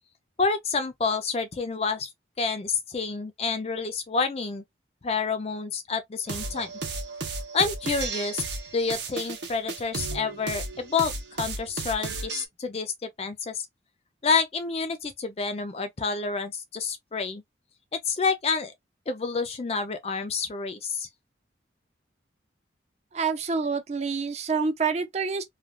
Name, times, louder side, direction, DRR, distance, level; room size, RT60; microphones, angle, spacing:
voice 1, 0.4-2.1 2.4-4.6 5.0-6.7 7.5-8.4 8.7-13.7 14.2-17.4 18.1-18.7 19.1-21.1, left 4 dB, 35° left, 0.4 m, -28 dB
sound 1, 6.3-12.5, right 3 dB, 70° right, 0.8 m, -34 dB
voice 2, 23.1-25.4, right 5 dB, 35° right, 0.4 m, -27 dB
3.2 x 2.4 x 2.2 m
head